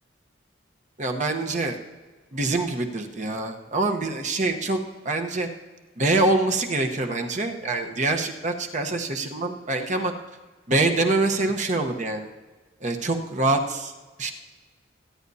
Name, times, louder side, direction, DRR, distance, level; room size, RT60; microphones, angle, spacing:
voice 1, 1.0-1.8 2.3-4.8 5.0-5.5 6.0-10.1 10.7-12.3 12.8-13.9 14.2-14.3, right 2 dB, 40° right, 4 dB, 1.0 m, -25 dB
23.5 x 9.5 x 2.8 m, 1.3 s
head